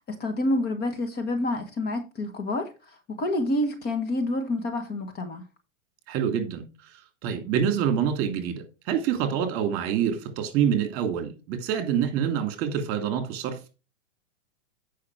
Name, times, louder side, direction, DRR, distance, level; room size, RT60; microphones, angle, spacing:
voice 1, 0.1-5.4, left 1 dB, 25° left, 1.3 m, -28 dB
voice 2, 6.1-13.6, right 8 dB, 35° right, 2.5 m, -26 dB
8.5 x 5.7 x 4.6 m
hypercardioid pair, 135°, 38 cm